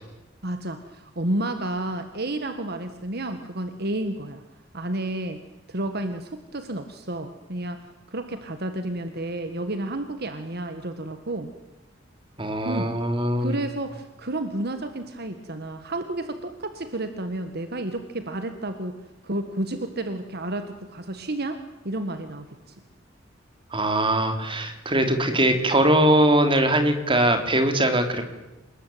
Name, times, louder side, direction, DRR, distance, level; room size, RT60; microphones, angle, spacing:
voice 1, 0.4-4.4 4.7-5.4 5.7-11.5 12.6-12.9 13.4-19.0 19.2-22.7, right 1 dB, 55° right, 8 dB, 1.7 m, -31 dB
voice 2, 12.4-13.6 23.7-28.3, right 1 dB, 25° right, 6 dB, 3.3 m, -21 dB
27.5 x 20.0 x 9.3 m, 1.0 s
head